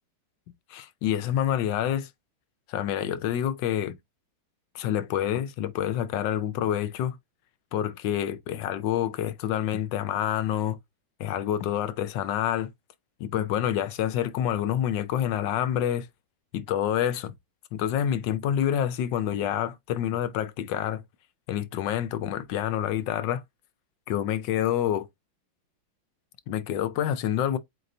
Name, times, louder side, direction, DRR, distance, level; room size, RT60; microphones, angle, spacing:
voice 1, 0.7-2.1 2.7-4.0 4.7-7.2 7.7-10.8 11.2-12.7 13.2-16.1 16.5-17.3 17.7-21.0 21.5-23.4 24.1-25.1 26.5-27.6, left 10 dB, 70° left, 1.2 m, -27 dB
7.7 x 2.6 x 2.6 m
omnidirectional pair, 2.2 m